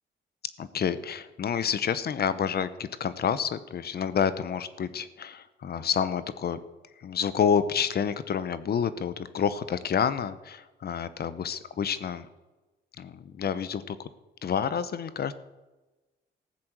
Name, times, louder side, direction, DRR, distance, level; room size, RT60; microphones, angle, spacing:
voice 1, 0.6-6.6 7.0-12.3 13.0-14.1 14.4-15.3, left 7 dB, 55° left, 14 dB, 1.0 m, -29 dB
14.5 x 7.7 x 7.5 m, 1.1 s
cardioid pair, 90°, 20 cm